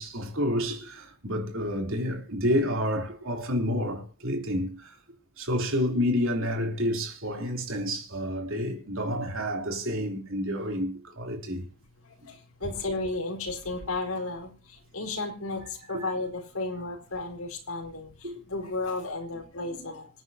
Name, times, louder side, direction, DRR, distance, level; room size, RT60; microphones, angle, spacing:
voice 1, 0.0-5.0 5.4-11.7 15.6-16.1 18.2-18.3, equal, 60° right, 3.5 m, -29 dB
voice 2, 12.2-20.1, left 2 dB, 75° left, 4.5 m, -33 dB
26.0 x 9.6 x 2.9 m
head